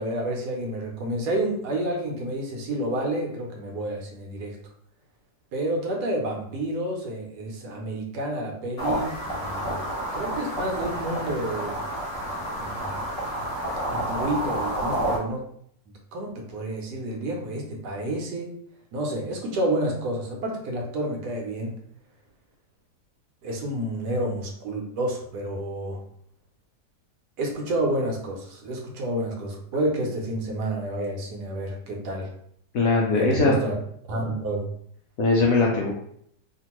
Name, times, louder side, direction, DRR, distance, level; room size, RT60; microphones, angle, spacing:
voice 1, 0.0-4.6 5.5-11.8 12.2-12.3 12.6-13.0 13.9-15.4 16.1-18.5 18.9-21.7 23.4-26.0 27.4-32.3 33.1-33.7 34.1-34.6, right 1 dB, 70° right, 1 dB, 1.1 m, -29 dB
sound 1, 8.8-15.2, right 1 dB, 45° left, 1.1 m, -29 dB
voice 2, 32.7-33.6 35.2-35.9, left 3 dB, 75° left, -2 dB, 0.8 m, -20 dB
2.9 x 2.5 x 2.9 m, 0.67 s
omnidirectional pair, 1.9 m